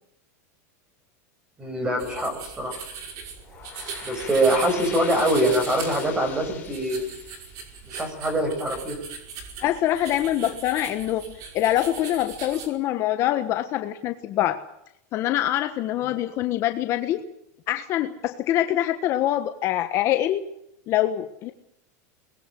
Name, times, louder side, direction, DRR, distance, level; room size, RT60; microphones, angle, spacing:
voice 1, 1.6-2.8 4.0-7.1 7.9-9.0, right 1 dB, 10° right, 5 dB, 7.8 m, -24 dB
sound 1, 2.0-12.7, right 6 dB, 40° right, 5.3 m, -39 dB
sound 2, 3.3-8.6, left 7 dB, 15° left, 5.7 m, -42 dB
voice 2, 9.6-14.6 15.1-17.2 17.7-20.5 20.9-21.5, left 13 dB, 35° left, 7 dB, 1.4 m, -24 dB
23.5 x 20.5 x 7.8 m, 0.80 s
supercardioid pair, 165°, 9 cm